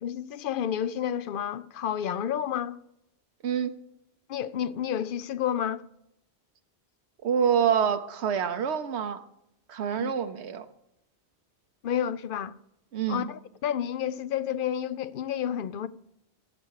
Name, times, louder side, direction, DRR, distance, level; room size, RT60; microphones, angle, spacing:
voice 1, 0.0-2.8 4.3-5.8 10.0-10.1 11.8-12.5 13.1-15.9, left 9 dB, 60° left, 0.6 m, -30 dB
voice 2, 7.2-9.2 9.7-10.7 12.9-13.3, right 8 dB, 80° right, 1.0 m, -26 dB
15.0 x 7.8 x 4.7 m
omnidirectional pair, 1.1 m